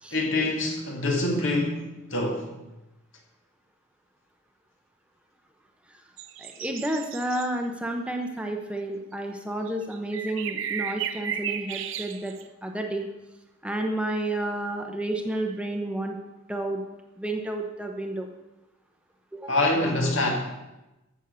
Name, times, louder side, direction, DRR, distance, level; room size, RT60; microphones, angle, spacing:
voice 1, 0.1-2.5 19.5-20.3, left 2 dB, 65° left, 2.5 m, -25 dB
sound 1, 6.2-7.5 9.7-12.4, right 9 dB, 65° right, 0.8 m, -34 dB
voice 2, 6.4-12.3 12.6-13.1 13.6-16.2 16.5-16.8 17.2-18.3 19.3-19.6, right 1 dB, 5° right, 0.8 m, -31 dB
14.5 x 6.4 x 6.8 m
head